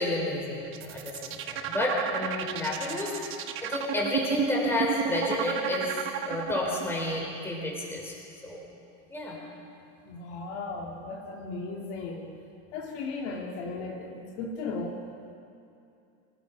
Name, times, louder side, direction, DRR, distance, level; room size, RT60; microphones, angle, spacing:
voice 1, 0.0-5.9 6.2-8.2 8.4-8.6 9.1-9.4, left 1 dB, 5° left, -3 dB, 4.8 m, -31 dB
sound 1, 0.7-6.9, right 9 dB, 35° right, 1.1 m, -32 dB
voice 2, 10.1-12.3 12.7-15.0, left 3 dB, 55° left, -1 dB, 2.6 m, -36 dB
25.0 x 18.5 x 6.1 m, 2.6 s
supercardioid pair, 165°, 37 cm